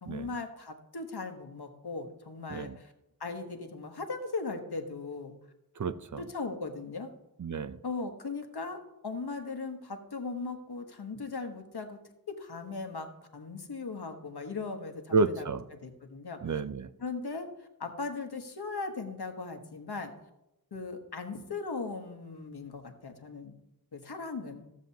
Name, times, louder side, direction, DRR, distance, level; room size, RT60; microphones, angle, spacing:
voice 1, 0.0-2.9 3.2-5.3 6.2-7.1 7.8-12.0 12.3-15.5 15.8-16.4 17.0-17.5 17.8-20.1 20.7-23.5 23.9-24.7, left 4 dB, 80° left, 5 dB, 1.1 m, -38 dB
voice 2, 5.8-6.2 7.4-7.8 15.1-15.6 16.4-16.9, right 4 dB, 50° right, 13 dB, 0.5 m, -30 dB
15.0 x 7.4 x 2.8 m, 0.89 s
wide cardioid pair, 65°, 38 cm